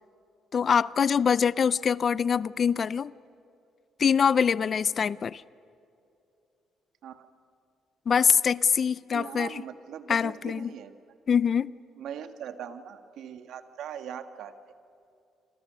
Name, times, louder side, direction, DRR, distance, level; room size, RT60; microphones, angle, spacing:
voice 1, 0.5-3.1 4.0-5.4 8.1-9.6 10.1-10.7 11.3-11.7, left 7 dB, 50° left, 0.5 m, -24 dB
voice 2, 9.1-10.9 12.0-14.6, right 8 dB, 80° right, 1.6 m, -40 dB
28.5 x 26.5 x 6.2 m
cardioid pair, 90°, 0 cm